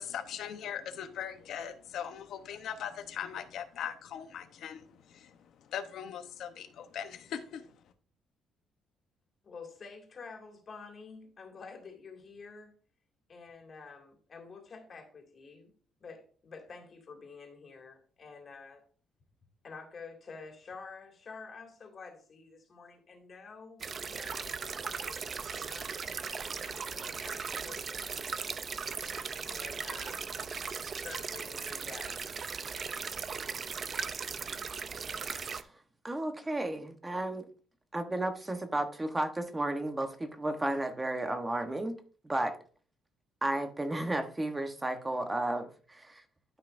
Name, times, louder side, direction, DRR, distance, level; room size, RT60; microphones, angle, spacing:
voice 1, 0.0-4.8 5.7-7.6, left 8 dB, 60° left, 0.9 m, -39 dB
voice 2, 9.4-12.7 13.3-15.7 16.0-18.8 19.6-28.4 29.5-30.3 30.9-32.2, left 4 dB, 35° left, 2.3 m, -49 dB
sound 1, 23.8-35.6, right 5 dB, 35° right, 0.5 m, -38 dB
voice 3, 36.0-37.5 37.9-42.0 42.2-42.6 43.4-46.2, right 1 dB, 10° right, 1.0 m, -33 dB
12.5 x 5.5 x 2.6 m
cardioid pair, 150°, 0 cm